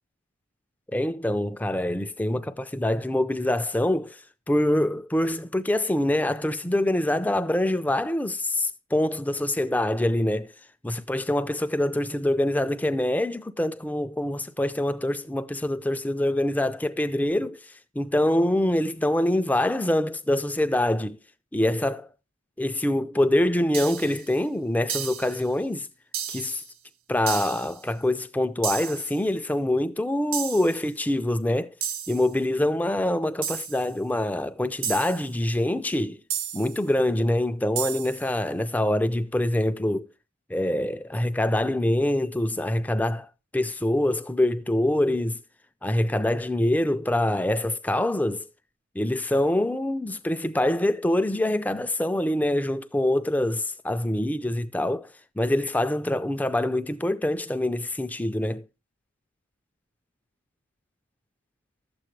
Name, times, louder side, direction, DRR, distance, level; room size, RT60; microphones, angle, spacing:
voice 1, 0.9-4.2 4.5-10.5 10.8-21.2 21.5-22.1 22.6-25.9 26.3-26.6 27.1-31.7 32.1-36.2 36.5-40.1 40.5-45.4 45.8-48.4 49.0-58.6, left 1 dB, 5° left, 0.4 m, -25 dB
sound 1, 23.7-24.2 24.9-25.4 26.1-26.6 27.3-27.8 28.6-29.2 30.3-30.8 31.8-32.3 33.4-33.9 34.8-35.3 36.3-36.8 37.8-38.3, right 8 dB, 60° right, 0.7 m, -32 dB
12.0 x 7.8 x 3.1 m
head